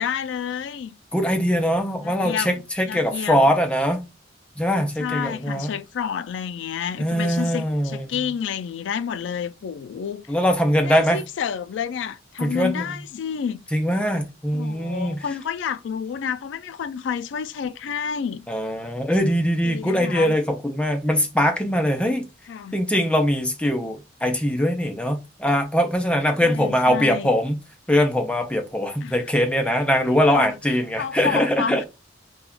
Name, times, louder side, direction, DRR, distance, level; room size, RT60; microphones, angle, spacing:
voice 1, 0.0-0.9 2.0-2.6 2.9-3.4 5.0-10.2 10.8-13.6 14.5-18.5 19.6-20.4 22.5-22.8 26.4-27.3 29.0-29.2 30.3-30.5 31.0-31.8, left 7 dB, 75° left, 0.3 m, -29 dB
voice 2, 1.1-4.0 4.6-5.7 7.0-8.1 10.3-11.2 12.4-12.9 13.7-15.2 18.5-22.2 22.7-27.6 27.9-31.8, equal, 5° left, 0.4 m, -22 dB
2.3 x 2.2 x 3.7 m
head